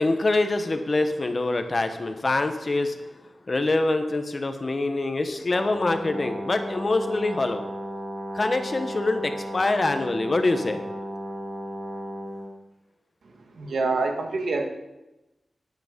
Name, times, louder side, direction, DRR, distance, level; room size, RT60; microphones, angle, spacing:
voice 1, 0.0-7.6 8.3-10.8, left 2 dB, 35° left, 8 dB, 1.1 m, -25 dB
Brass instrument, 5.5-12.5, equal, 40° right, 5.2 m, -34 dB
voice 2, 13.6-14.7, right 3 dB, 85° right, 4 dB, 1.6 m, -26 dB
12.5 x 9.7 x 5.2 m, 1.0 s
wide cardioid pair, 135°, 0 cm